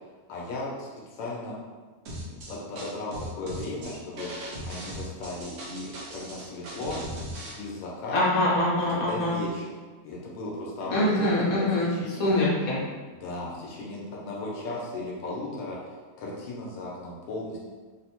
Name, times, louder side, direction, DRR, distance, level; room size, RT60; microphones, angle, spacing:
voice 1, 0.3-1.6 2.1-7.0 7.6-8.2 8.9-9.6 10.0-12.4 13.1-17.6, left 2 dB, 90° left, -4 dB, 1.4 m, -36 dB
sound 1, 2.1-7.5, right 1 dB, 65° right, 0.7 m, -38 dB
voice 2, 8.1-9.4 10.9-11.9 12.2-12.8, left 1 dB, 55° left, -7 dB, 1.2 m, -24 dB
3.6 x 2.0 x 2.8 m, 1.3 s
omnidirectional pair, 1.9 m